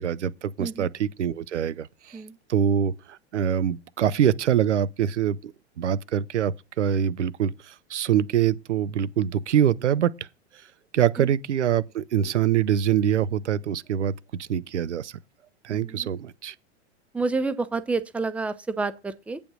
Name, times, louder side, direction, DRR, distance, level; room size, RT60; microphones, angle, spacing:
voice 1, 0.0-2.2 2.5-5.5 5.8-10.1 10.9-14.1 14.4-15.2 15.6-16.5, right 9 dB, 80° right, 0.6 m, -24 dB
voice 2, 0.6-0.9 2.1-2.3 11.2-11.3 15.7-16.1 17.1-19.4, right 3 dB, 5° right, 0.5 m, -29 dB
8.7 x 5.2 x 6.1 m
figure-of-eight pair, 95°, 35 cm